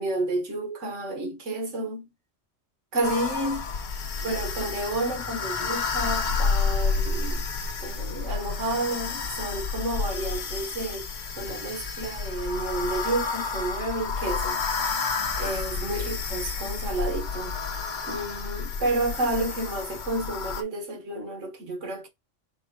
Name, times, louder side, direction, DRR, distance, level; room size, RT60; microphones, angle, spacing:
voice 1, 0.0-2.1 2.9-3.7 4.2-7.5 7.8-11.1 11.4-14.6 15.4-17.6 18.0-22.1, right 2 dB, 85° right, 1.5 m, -30 dB
sound 1, 3.0-20.6, left 4 dB, 45° left, 0.8 m, -30 dB
4.2 x 2.2 x 4.7 m
omnidirectional pair, 1.2 m